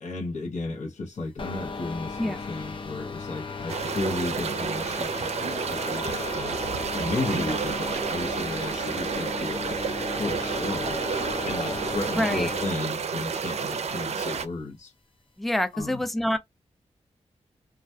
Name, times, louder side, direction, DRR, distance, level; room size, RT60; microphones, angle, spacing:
voice 1, 0.0-6.6 6.9-11.0 11.4-14.9 15.7-16.0, left 3 dB, 80° left, 0.8 m, -34 dB
sound 1, 1.4-12.8, left 4 dB, 45° left, 0.6 m, -36 dB
sound 2, 3.7-14.5, right 6 dB, 65° right, 0.4 m, -30 dB
voice 2, 12.1-12.5 15.4-16.4, left 1 dB, ahead, 0.5 m, -27 dB
2.3 x 2.2 x 2.6 m
wide cardioid pair, 75°, 12 cm